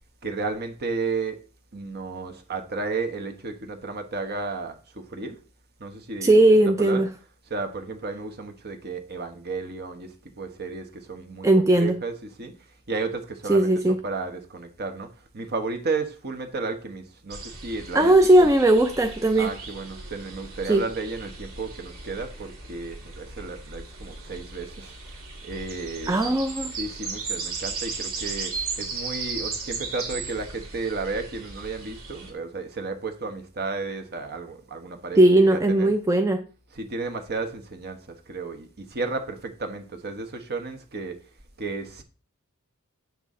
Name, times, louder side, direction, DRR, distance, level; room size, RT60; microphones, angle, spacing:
voice 1, 0.2-1.4 1.7-5.4 5.8-7.1 7.4-12.5 12.9-18.5 19.3-26.3 26.6-35.9 36.7-41.2 41.6-42.0, right 3 dB, 50° right, 1.2 m, -33 dB
voice 2, 6.2-7.1 11.4-12.0 13.5-14.0 17.9-19.5 20.7-20.8 26.1-26.7 35.2-36.4, right 1 dB, 15° right, 0.5 m, -18 dB
sound 1, 17.3-32.3, right 4 dB, 75° right, 2.4 m, -36 dB
8.2 x 6.1 x 3.7 m
head